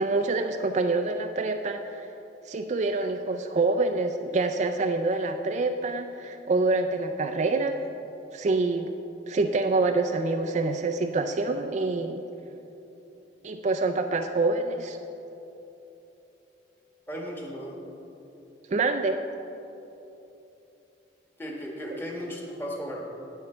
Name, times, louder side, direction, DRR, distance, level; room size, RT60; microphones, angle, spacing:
voice 1, 0.0-2.1 2.5-7.8 8.3-8.9 9.3-12.2 13.4-15.0 18.7-19.2, right 3 dB, 40° right, 6 dB, 0.4 m, -26 dB
voice 2, 17.1-17.8 21.4-23.0, equal, 10° left, -1 dB, 1.4 m, -35 dB
8.8 x 8.1 x 5.4 m, 3.0 s
head